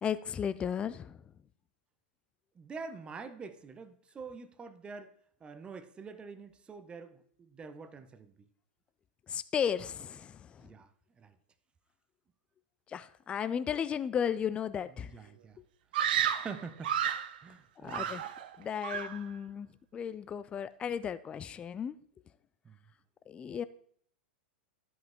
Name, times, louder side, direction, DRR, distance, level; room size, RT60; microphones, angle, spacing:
voice 1, 0.0-1.2 9.3-10.7 12.9-15.1 16.3-16.5 17.8-18.2 18.6-22.0 23.3-23.6, left 8 dB, 20° left, 0.3 m, -35 dB
voice 2, 2.6-5.1 5.4-8.3 10.6-10.9 11.2-11.3 15.0-15.6 16.4-16.9 17.4-18.1 22.6-22.8, right 5 dB, 20° right, 0.6 m, -46 dB
Screaming, 15.9-17.4 17.9-18.5 18.8-19.2, right 9 dB, 60° right, 0.5 m, -32 dB
12.0 x 5.4 x 3.7 m
figure-of-eight pair, 95°, 6 cm